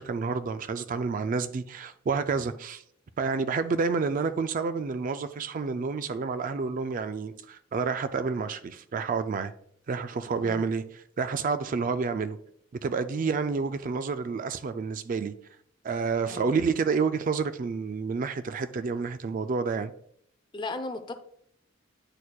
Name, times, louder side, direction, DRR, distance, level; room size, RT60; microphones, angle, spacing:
voice 1, 0.0-2.8 3.2-9.5 9.9-10.8 11.2-12.4 12.8-15.3 15.8-19.9, right 5 dB, 45° right, 0.3 m, -29 dB
voice 2, 16.2-16.6 20.5-21.1, left 2 dB, 25° left, 0.5 m, -36 dB
9.7 x 4.3 x 2.3 m
head